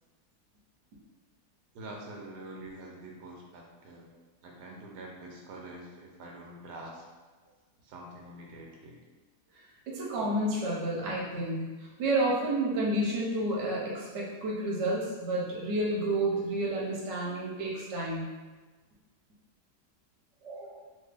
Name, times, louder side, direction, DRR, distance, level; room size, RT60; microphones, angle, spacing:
voice 1, 1.7-4.1 4.4-7.0 7.8-9.0, right 1 dB, 85° right, -1 dB, 1.2 m, -45 dB
voice 2, 9.9-11.7 12.0-18.3 20.4-20.8, right 1 dB, 55° right, -4 dB, 1.0 m, -30 dB
2.8 x 2.7 x 3.3 m, 1.3 s
omnidirectional pair, 1.7 m